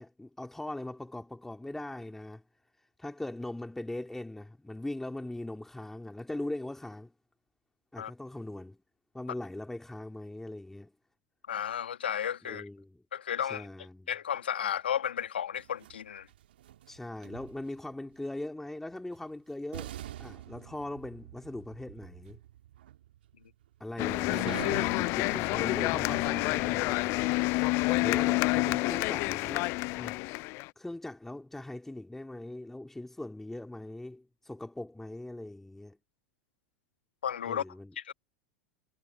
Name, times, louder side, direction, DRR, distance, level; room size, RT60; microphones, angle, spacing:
voice 1, 0.0-2.4 2.8-7.1 7.9-8.8 9.1-10.9 12.4-13.0 13.4-14.1 16.9-22.4 23.8-27.2 28.0-30.2 30.8-36.0 37.4-37.9, left 1 dB, 5° left, 2.7 m, -40 dB
voice 2, 11.5-12.6 13.1-13.7 14.1-16.3 37.2-37.6 37.9-38.1, left 9 dB, 80° left, 1.7 m, -33 dB
sound 1, 15.6-17.9 19.2-19.3 19.7-27.2, right 12 dB, 75° right, 1.8 m, -46 dB
sound 2, 24.0-30.7, left 25 dB, 50° left, 0.4 m, -28 dB
hypercardioid pair, 90°, 6 cm